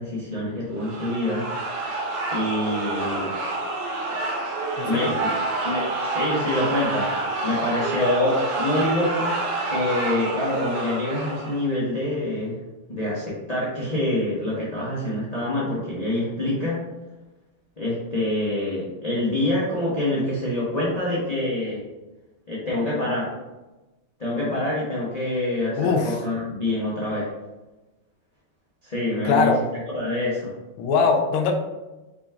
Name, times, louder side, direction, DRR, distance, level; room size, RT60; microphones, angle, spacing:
voice 1, 0.0-1.4 2.3-3.3 4.9-5.3 5.6-9.4 9.6-12.6 12.9-16.8 17.8-21.8 22.5-23.3 24.2-27.3 28.8-29.5 29.9-30.5, left 1 dB, 40° left, -7 dB, 0.5 m, -26 dB
sound 1, 0.8-11.7, right 2 dB, 70° right, 1.6 m, -28 dB
voice 2, 4.8-5.1 25.8-26.2 29.2-29.6 30.8-31.5, left 4 dB, 75° left, 3 dB, 1.5 m, -21 dB
5.0 x 4.2 x 2.4 m, 1.1 s
omnidirectional pair, 2.4 m